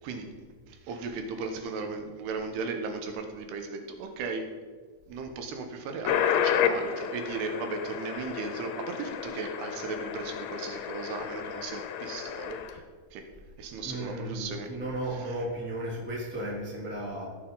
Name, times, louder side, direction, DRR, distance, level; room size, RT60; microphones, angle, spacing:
voice 1, 0.0-0.4 0.7-4.5 5.1-12.8 13.1-13.3 13.6-14.7 15.1-15.4, right 4 dB, 85° right, 5 dB, 3.1 m, -36 dB
sound 1, 6.0-12.8, left 8 dB, 80° left, 2.6 m, -31 dB
voice 2, 13.8-17.3, right 1 dB, 5° right, -4 dB, 1.4 m, -34 dB
17.0 x 6.7 x 3.9 m, 1.5 s
omnidirectional pair, 4.6 m